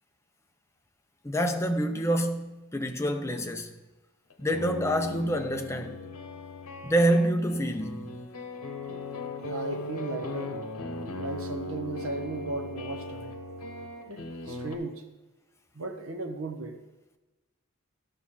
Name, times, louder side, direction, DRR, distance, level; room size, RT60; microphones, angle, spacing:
voice 1, 1.2-3.7 4.4-6.0 6.8-8.1, right 1 dB, 10° left, 0.5 m, -27 dB
sound 1, 4.3-14.8, left 2 dB, 85° left, 0.9 m, -38 dB
voice 2, 9.4-10.6 11.2-13.3 14.1-15.0 15.7-16.8, right 2 dB, 65° right, 1.0 m, -36 dB
11.5 x 5.8 x 4.1 m
head